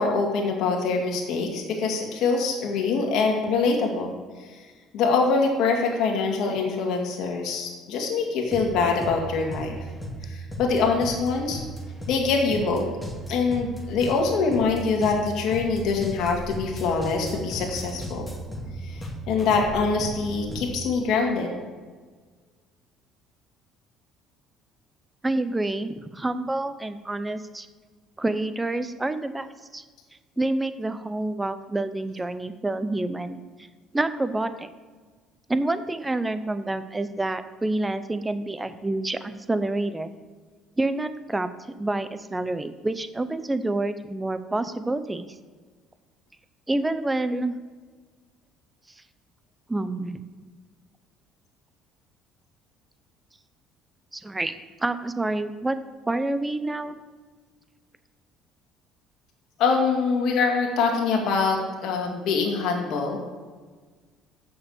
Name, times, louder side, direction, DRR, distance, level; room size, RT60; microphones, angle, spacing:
voice 1, 0.0-4.1 4.5-4.6 4.9-9.8 10.3-11.6 12.1-12.9 13.3-18.3 18.8-19.0 19.3-21.5 59.6-63.2, left 4 dB, 70° left, 1 dB, 2.2 m, -24 dB
sound 1, 8.5-20.8, right 1 dB, 5° left, 2.1 m, -36 dB
voice 2, 25.2-27.7 28.2-29.8 30.4-33.4 33.9-34.7 35.5-40.1 40.8-41.5 41.8-45.3 46.7-47.5 49.7-50.2 54.1-55.8 56.1-57.0, right 2 dB, 15° right, 11 dB, 0.7 m, -28 dB
6.9 x 6.7 x 7.1 m, 1.5 s
cardioid pair, 100°, 0 cm